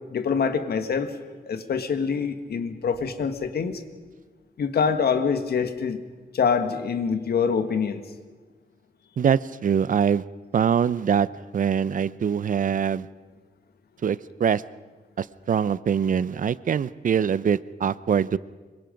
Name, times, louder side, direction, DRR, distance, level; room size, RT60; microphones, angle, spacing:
voice 1, 0.1-1.1 1.5-3.8 4.6-6.0 6.3-8.0, left 6 dB, 70° left, 8 dB, 1.6 m, -25 dB
voice 2, 9.2-10.2 10.5-11.3 11.5-13.1 14.0-14.6 15.2-18.4, right 7 dB, 50° right, 18 dB, 0.6 m, -23 dB
25.5 x 23.0 x 5.2 m, 1.3 s
wide cardioid pair, 115°, 17 cm